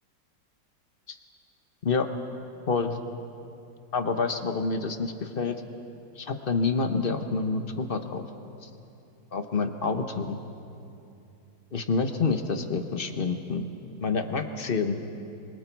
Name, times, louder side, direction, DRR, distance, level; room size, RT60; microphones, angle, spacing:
voice 1, 2.7-3.0 3.9-5.5 6.1-8.2 8.6-8.7 9.3-10.4 11.7-13.7 14.0-15.0, left 4 dB, 35° left, 7 dB, 1.1 m, -28 dB
27.0 x 25.5 x 4.6 m, 2.7 s
omnidirectional pair, 1.9 m